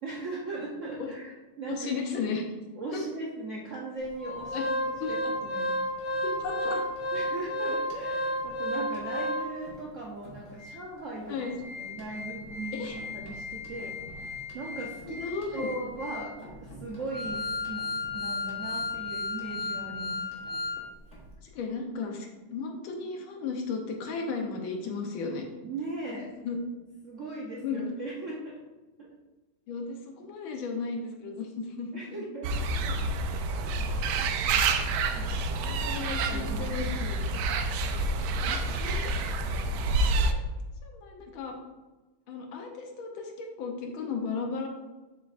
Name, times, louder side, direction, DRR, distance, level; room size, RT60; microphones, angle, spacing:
voice 1, 0.0-1.9 2.8-4.6 4.8-5.8 7.1-11.4 11.7-17.8 18.1-20.2 25.6-26.3 27.0-28.6 29.0-29.1 31.9-33.1 33.6-33.9 35.1-35.5 35.8-36.7, right 2 dB, 60° right, -4 dB, 0.8 m, -39 dB
voice 2, 1.7-2.4 2.9-3.0 4.5-4.7 5.0-5.1 6.2-6.8 11.3-11.5 12.7-12.9 15.1-15.7 21.4-25.4 26.1-26.6 27.6-27.9 29.7-32.2 35.5-37.2 38.4-39.2 39.9-40.0 40.3-40.4 40.8-41.6 42.3-44.7, left 4 dB, 75° left, 2 dB, 1.6 m, -35 dB
Organ, 4.2-9.7 10.2-10.3 10.6-10.7 11.2-20.8 21.1-21.2, left 1 dB, 45° left, 1.4 m, -33 dB
sound 1, 32.4-40.3, right 2 dB, 75° right, 1.3 m, -28 dB
7.2 x 5.6 x 2.5 m, 1.2 s
omnidirectional pair, 2.3 m